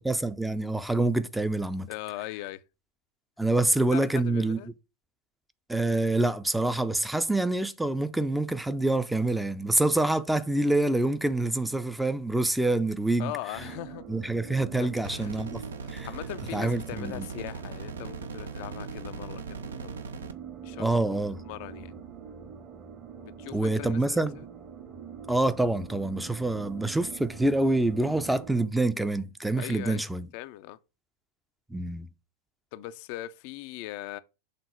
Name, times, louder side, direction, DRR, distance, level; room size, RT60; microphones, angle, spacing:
voice 1, 0.0-1.9 3.4-4.6 5.7-13.3 14.1-15.6 15.9-16.1 16.5-17.3 20.8-21.4 23.5-24.4 25.3-30.3 31.7-32.1, right 2 dB, 5° right, 0.5 m, -26 dB
voice 2, 1.9-2.6 3.9-4.7 13.2-14.1 14.8-15.3 15.8-20.0 20.6-21.0 21.5-21.9 23.2-24.2 29.6-30.0 30.3-30.8 32.7-34.2, left 16 dB, 45° left, 0.4 m, -40 dB
sound 1, 13.5-28.7, right 7 dB, 30° right, 1.1 m, -44 dB
sound 2, 15.0-20.3, right 4 dB, 70° right, 0.6 m, -40 dB
6.7 x 3.7 x 5.4 m
figure-of-eight pair, 90°, 0 cm